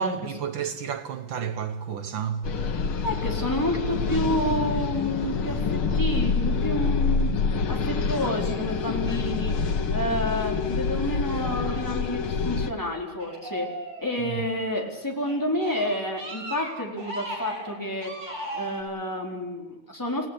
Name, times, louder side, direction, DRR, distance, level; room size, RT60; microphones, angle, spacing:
voice 1, 0.0-2.5 14.2-14.5, right 7 dB, 65° right, 1.8 m, -31 dB
sound 1, 2.4-12.7, left 4 dB, 85° left, 2.5 m, -26 dB
voice 2, 3.0-7.3 7.7-9.6 9.9-13.7 14.0-18.1 18.5-20.3, left 1 dB, 10° left, 4.5 m, -29 dB
sound 2, 13.2-14.6 15.1-18.8, right 1 dB, 90° right, 7.5 m, -37 dB
30.0 x 18.0 x 8.5 m
omnidirectional pair, 2.3 m